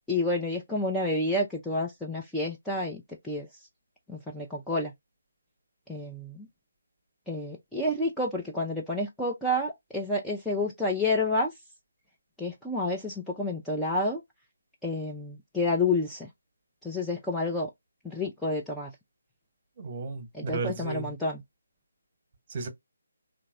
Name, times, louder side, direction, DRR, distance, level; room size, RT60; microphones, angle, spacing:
voice 1, 0.1-3.5 4.1-4.9 5.9-6.5 7.3-11.5 12.4-14.2 14.8-16.3 16.8-17.7 18.0-18.9 20.3-21.4, left 2 dB, 5° left, 0.4 m, -29 dB
voice 2, 19.8-21.1 22.5-22.7, right 4 dB, 30° right, 1.1 m, -34 dB
3.0 x 2.6 x 2.5 m
figure-of-eight pair, 150°, 0 cm